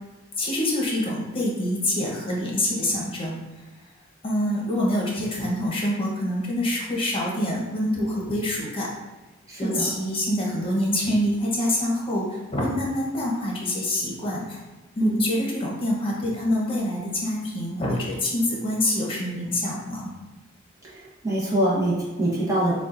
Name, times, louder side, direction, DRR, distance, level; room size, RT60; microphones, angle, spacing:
voice 1, 0.4-3.4 4.2-8.9 9.6-14.6 15.0-20.1, left 1 dB, 25° left, -3 dB, 1.1 m, -26 dB
voice 2, 9.5-9.9 15.0-15.1 20.9-22.7, right 1 dB, 15° right, -7 dB, 1.2 m, -24 dB
6.7 x 2.4 x 2.6 m, 1.2 s
head